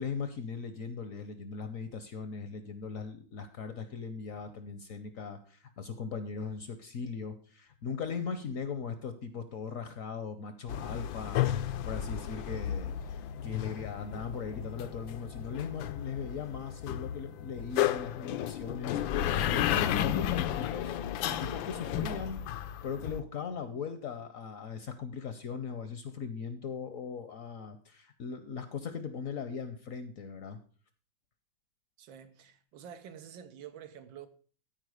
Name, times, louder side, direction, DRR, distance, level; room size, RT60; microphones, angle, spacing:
voice 1, 0.0-21.0 21.3-22.4 22.8-30.6, left 6 dB, 60° left, 0.9 m, -39 dB
sound 1, 10.7-23.2, left 11 dB, 80° left, 1.3 m, -33 dB
voice 2, 32.0-34.3, right 9 dB, 85° right, 1.7 m, -48 dB
13.0 x 4.8 x 4.8 m
omnidirectional pair, 2.1 m